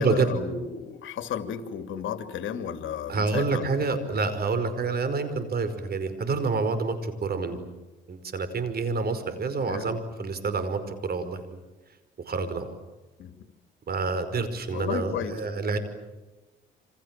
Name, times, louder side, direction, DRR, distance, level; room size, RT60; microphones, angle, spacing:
voice 1, 0.0-3.9 7.5-7.6 9.7-10.0 13.2-13.3 14.7-15.3, left 8 dB, 75° left, 8 dB, 2.8 m, -33 dB
voice 2, 3.1-7.6 8.1-11.6 12.2-12.8 13.9-15.8, right 4 dB, 50° right, 11 dB, 5.1 m, -28 dB
28.0 x 26.5 x 7.6 m, 1.1 s
cardioid pair, 90°, 20 cm